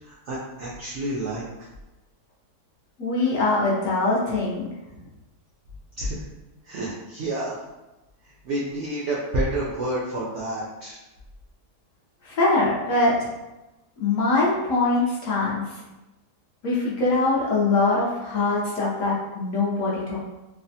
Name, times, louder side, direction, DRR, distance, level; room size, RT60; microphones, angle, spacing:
voice 1, 0.0-1.7 6.0-6.3 6.6-7.6 8.2-11.0, right 1 dB, 90° right, -6 dB, 0.6 m, -29 dB
voice 2, 3.0-4.7 12.2-13.3 14.0-15.8 16.6-20.2, left 2 dB, 65° left, -6 dB, 0.8 m, -23 dB
3.2 x 2.1 x 2.6 m, 1.0 s
omnidirectional pair, 1.8 m